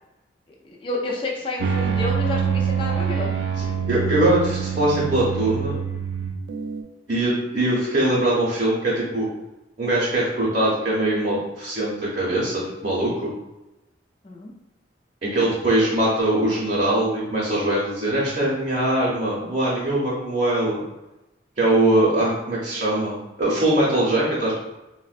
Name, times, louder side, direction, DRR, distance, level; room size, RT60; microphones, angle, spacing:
voice 1, 0.6-3.3 14.2-14.5, left 2 dB, 30° left, -2 dB, 0.3 m, -29 dB
sound 1, 1.6-6.8, right 7 dB, 80° right, 0.3 m, -25 dB
voice 2, 3.9-5.8 7.1-9.3 9.8-13.3 15.2-20.8 21.6-24.5, right 1 dB, 40° right, -7 dB, 0.7 m, -22 dB
3.4 x 2.1 x 2.4 m, 0.97 s
head